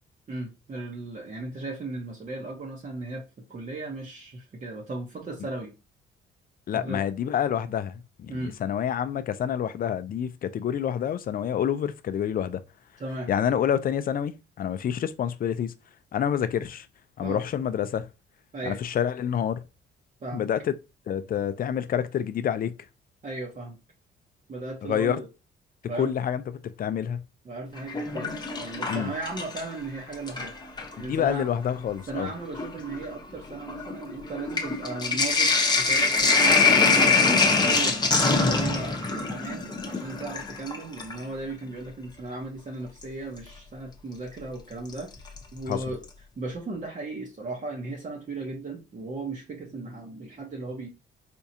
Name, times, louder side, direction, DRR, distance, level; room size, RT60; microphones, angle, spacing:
voice 1, 0.3-5.7 6.7-7.0 8.3-8.6 13.0-13.3 17.2-17.4 18.5-18.8 20.2-20.5 23.2-23.8 24.5-25.3 25.8-26.1 27.4-30.5 31.0-31.5 32.1-37.2 37.4-46.0 46.4-50.9, right 3 dB, 40° right, 0.9 m, -36 dB
voice 2, 6.7-12.6 13.3-15.7 16.1-16.9 17.2-18.1 18.6-19.6 20.3-20.7 21.1-22.7 24.8-25.2 26.0-26.4 26.8-27.2 28.9-29.1 31.0-32.3 45.7-45.8, left 9 dB, 45° left, 0.4 m, -27 dB
Sink (filling or washing), 27.8-29.8 30.1-31.0 31.8-31.9 32.1-41.2 43.0-43.1 44.9-45.4 45.7-45.8 46.0-46.1, left 4 dB, 20° left, 0.8 m, -24 dB
4.4 x 2.4 x 2.7 m
cardioid pair, 90°, 20 cm